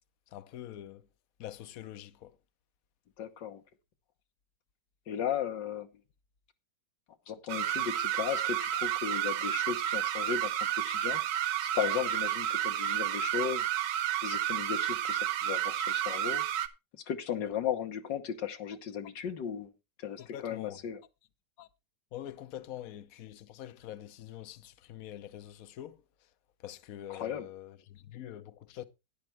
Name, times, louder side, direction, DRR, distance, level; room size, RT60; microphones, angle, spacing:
voice 1, 0.3-1.1 1.4-2.4 17.4-17.5 20.2-20.8 21.6-21.7 22.1-26.0 26.6-28.8, left 12 dB, 60° left, 1.1 m, -45 dB
voice 2, 3.2-3.6 5.1-5.9 7.3-11.2 11.6-13.7 14.2-16.4 17.1-19.7 20.0-21.0 27.1-27.5, left 8 dB, 80° left, 1.8 m, -36 dB
sound 1, 7.5-16.7, right 12 dB, 80° right, 1.5 m, -31 dB
12.0 x 10.5 x 3.3 m
omnidirectional pair, 1.9 m